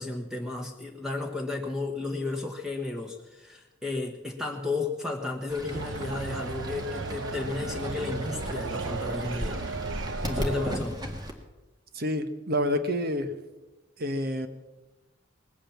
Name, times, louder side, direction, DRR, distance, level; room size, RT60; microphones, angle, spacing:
voice 1, 0.0-9.7 10.3-11.0, left 3 dB, 5° right, 2 dB, 1.2 m, -33 dB
Fowl / Bird, 5.5-11.3, equal, 20° right, 1.8 m, -37 dB
sound 1, 5.7-10.8, right 4 dB, 85° right, 0.7 m, -35 dB
voice 2, 11.9-13.3 14.0-14.5, equal, 55° right, 9 dB, 1.2 m, -28 dB
20.0 x 8.8 x 7.3 m, 1.1 s
head